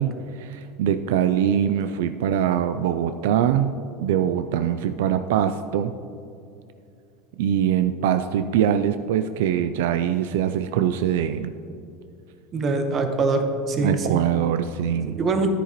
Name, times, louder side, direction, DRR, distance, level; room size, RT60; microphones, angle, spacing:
voice 1, 0.0-3.7 4.0-5.9 7.4-11.5 13.8-15.2, right 9 dB, 80° right, 10 dB, 0.3 m, -23 dB
voice 2, 12.5-14.2 15.2-15.5, right 3 dB, 35° right, 6 dB, 1.0 m, -23 dB
10.5 x 9.7 x 3.0 m, 2.6 s
supercardioid pair, 125°, 0 cm